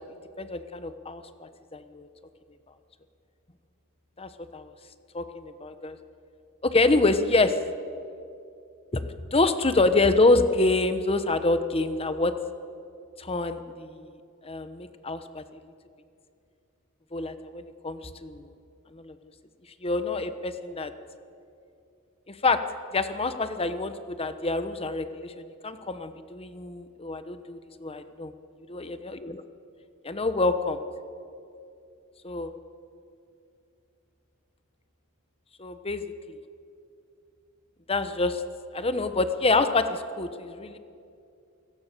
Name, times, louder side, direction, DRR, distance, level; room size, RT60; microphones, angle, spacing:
voice 1, 0.4-2.1 4.2-4.7 5.1-6.0 6.6-7.6 8.9-9.0 9.3-12.3 13.2-14.0 14.4-15.4 17.1-18.5 18.9-19.1 19.8-20.9 22.4-22.6 22.9-28.3 28.7-29.4 30.0-30.8 32.2-32.5 35.6-36.0 37.9-38.4 38.7-40.8, left 2 dB, 25° left, 10 dB, 1.1 m, -26 dB
29.0 x 17.5 x 6.9 m, 2.5 s
head